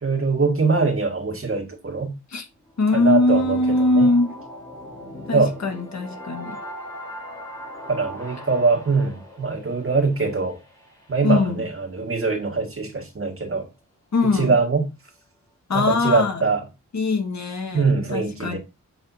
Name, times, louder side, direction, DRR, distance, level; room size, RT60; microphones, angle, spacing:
voice 1, 0.0-2.1 2.9-4.1 5.3-5.6 7.9-10.6 11.1-13.7 14.2-14.8 15.7-16.6 17.7-18.6, right 4 dB, 45° right, 2.1 m, -23 dB
sound 1, 2.6-12.5, equal, 10° left, 3.8 m, -40 dB
voice 2, 2.8-4.3 5.3-6.6 11.2-11.7 14.1-14.6 15.7-16.4 16.9-18.6, left 2 dB, 60° left, 1.7 m, -21 dB
7.7 x 6.7 x 2.8 m
wide cardioid pair, 125°, 31 cm